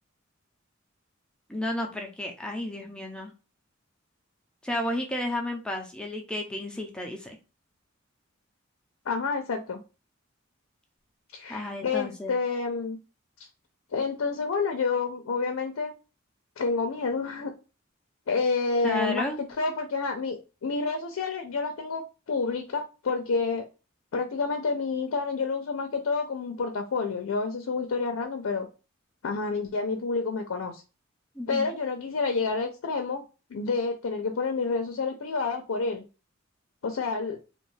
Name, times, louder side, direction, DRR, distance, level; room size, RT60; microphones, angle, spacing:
voice 1, 1.5-3.3 4.6-7.4 11.5-12.3 18.8-19.4 31.4-31.7, left 1 dB, 5° left, 1 dB, 0.4 m, -32 dB
voice 2, 9.1-9.8 11.3-13.0 13.9-15.9 16.6-17.5 18.3-23.7 24.1-28.7 29.2-30.8 31.5-33.2 33.5-36.0 36.8-37.4, left 4 dB, 85° left, 4 dB, 0.4 m, -29 dB
2.4 x 2.2 x 3.1 m, 0.31 s
head